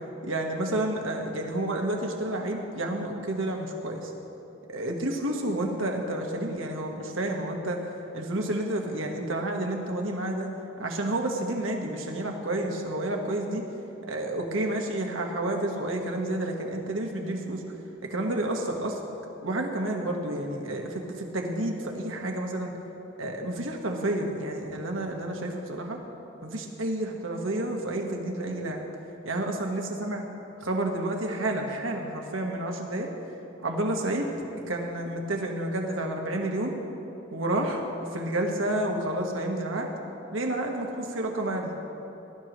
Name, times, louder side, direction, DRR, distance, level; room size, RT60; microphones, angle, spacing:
voice 1, 0.2-4.1 4.7-7.8 8.1-10.5 10.8-13.6 14.1-17.6 18.1-19.0 19.4-22.7 23.2-26.0 26.4-28.8 29.2-30.2 30.6-33.1 33.6-34.3 34.7-36.7 37.3-37.8 38.1-39.9 40.3-41.7, right 1 dB, 80° right, 2 dB, 1.4 m, -30 dB
20.5 x 12.5 x 3.1 m, 3.0 s
head